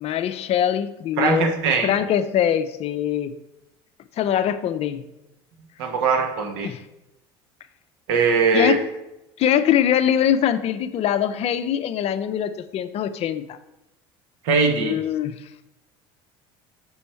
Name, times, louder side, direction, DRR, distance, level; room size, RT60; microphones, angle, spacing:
voice 1, 0.0-1.5 1.8-3.3 4.2-5.0 6.6-6.8 8.5-8.8 9.4-13.6 14.8-15.4, left 10 dB, 50° left, 11 dB, 0.5 m, -22 dB
voice 2, 1.2-1.9 5.8-6.7 8.1-8.8 14.4-15.0, right 4 dB, 75° right, 4 dB, 1.2 m, -20 dB
6.2 x 4.4 x 4.4 m, 0.93 s
hypercardioid pair, 80°, 14 cm